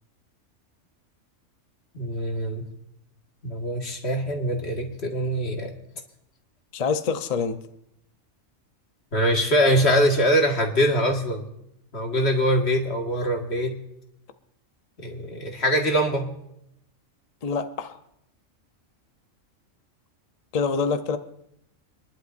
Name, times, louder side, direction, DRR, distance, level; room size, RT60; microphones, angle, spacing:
voice 1, 1.9-2.7 3.4-5.7 9.1-11.5 11.9-13.8 15.0-16.3, equal, 55° left, 1 dB, 2.0 m, -23 dB
voice 2, 6.7-7.6 17.4-18.0 20.5-21.2, left 5 dB, 35° left, 8 dB, 0.7 m, -26 dB
25.5 x 11.5 x 2.6 m, 0.77 s
omnidirectional pair, 1.3 m